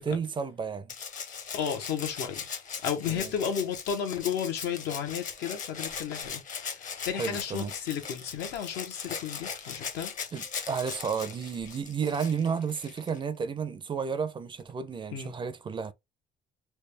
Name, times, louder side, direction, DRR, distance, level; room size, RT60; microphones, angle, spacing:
voice 1, 0.1-0.9 3.1-3.3 7.2-7.7 10.3-15.9, right 6 dB, 30° right, 0.5 m, -32 dB
Rattle (instrument), 0.9-13.2 14.6-14.7, left 6 dB, 50° left, 0.9 m, -39 dB
voice 2, 1.5-2.5 2.8-10.1 15.1-15.3, left 8 dB, 80° left, 1.0 m, -33 dB
3.4 x 2.3 x 3.3 m
cardioid pair, 110°, 17 cm